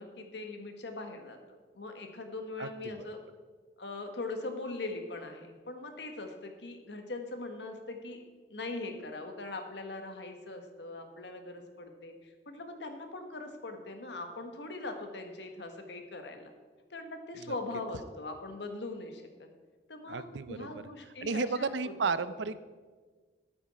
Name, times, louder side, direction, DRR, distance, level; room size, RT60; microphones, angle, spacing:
voice 1, 0.0-1.4 1.7-3.2 3.8-8.2 8.5-16.5 16.9-19.5 19.9-21.9 22.3-22.4, left 2 dB, 75° left, 5 dB, 1.4 m, -41 dB
voice 2, 20.1-20.8 21.2-22.6, right 4 dB, 85° right, 14 dB, 0.5 m, -33 dB
12.5 x 8.8 x 4.2 m, 1.4 s
head